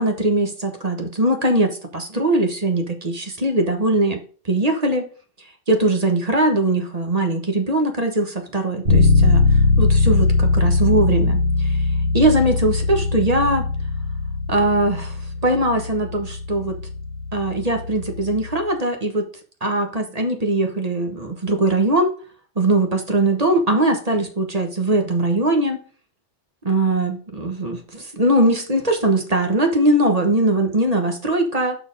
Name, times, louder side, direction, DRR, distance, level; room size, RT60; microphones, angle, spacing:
voice 1, 0.0-5.1 5.7-11.9 12.1-13.6 14.5-16.8 17.3-19.3 19.6-22.1 22.6-25.8 26.6-31.8, right 1 dB, 35° right, 4 dB, 1.2 m, -21 dB
Bass guitar, 8.9-18.6, left 3 dB, 50° right, 2.0 m, -20 dB
5.8 x 4.4 x 5.2 m, 0.40 s
omnidirectional pair, 1.3 m